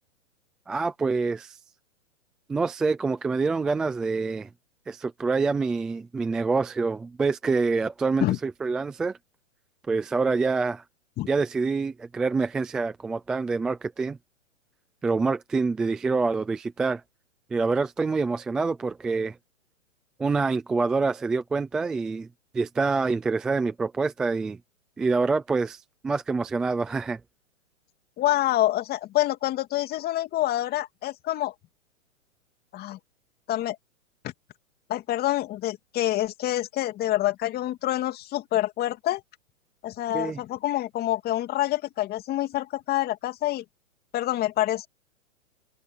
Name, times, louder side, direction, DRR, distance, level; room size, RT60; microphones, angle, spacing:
voice 1, 0.7-1.6 2.5-4.5 4.9-9.2 9.9-10.8 11.3-14.2 15.0-17.0 17.5-19.4 20.2-22.3 22.5-24.6 25.0-27.2 40.1-40.4, right 4 dB, ahead, 0.3 m, -26 dB
voice 2, 28.2-31.5 32.7-33.0 33.5-33.8 34.2-34.3 34.9-39.2 39.8-43.6 44.1-44.9, left 14 dB, 25° left, 2.5 m, -27 dB
hypercardioid pair, 130°, 40 cm